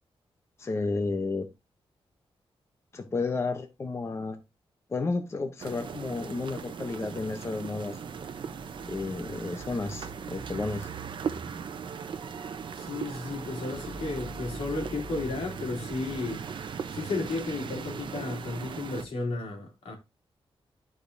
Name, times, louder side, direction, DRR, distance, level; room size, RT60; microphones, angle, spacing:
voice 1, 0.6-1.5 2.9-4.4 4.9-8.0 8.9-10.9, left 3 dB, 25° left, 0.7 m, -32 dB
sound 1, 5.6-19.0, right 6 dB, 55° right, 0.8 m, -38 dB
voice 2, 12.8-16.4 16.9-19.9, left 3 dB, 85° left, 2.8 m, -33 dB
12.0 x 4.9 x 2.6 m
wide cardioid pair, 180°, 10 cm